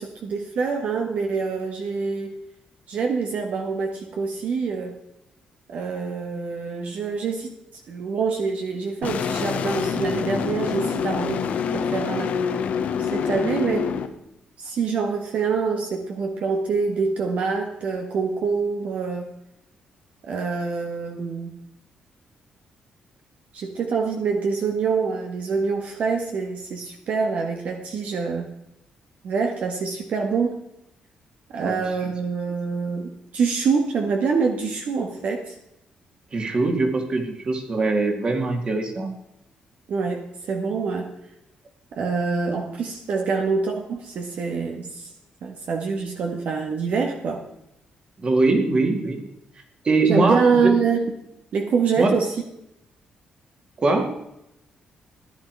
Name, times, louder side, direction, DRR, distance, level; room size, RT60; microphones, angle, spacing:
voice 1, 0.0-2.3 2.9-4.9 5.7-7.5 7.9-11.4 11.7-12.4 13.1-13.9 14.6-19.3 20.3-21.5 23.5-28.5 29.2-30.5 31.5-35.5 39.9-41.1 41.9-45.1 45.4-47.4 50.0-51.1 51.5-52.3, right 5 dB, 65° right, 3 dB, 1.7 m, -25 dB
sound 1, 9.0-14.1, left 7 dB, 70° left, 1.3 m, -26 dB
voice 2, 36.3-39.1 43.1-43.2 48.2-49.2 49.8-50.7 52.0-52.2 53.8-54.1, right 3 dB, 35° right, 4 dB, 2.5 m, -22 dB
15.5 x 10.5 x 4.7 m, 0.83 s
cardioid pair, 125°, 3 cm